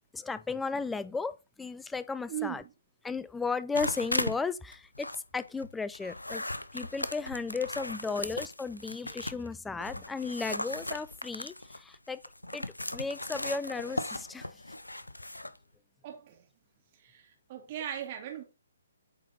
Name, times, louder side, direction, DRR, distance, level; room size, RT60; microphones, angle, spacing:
voice 1, 0.1-2.6 3.0-6.4 6.7-12.2 12.5-12.6 12.9-14.5, left 4 dB, 5° left, 0.4 m, -35 dB
voice 2, 2.3-2.6 8.1-8.3 16.0-16.5 17.0-18.4, right 11 dB, 35° right, 1.9 m, -39 dB
sound 1, 3.7-4.4 4.7-9.5 9.8-15.6, left 1 dB, 90° left, 0.6 m, -37 dB
8.5 x 4.0 x 4.1 m
figure-of-eight pair, 135°, 0 cm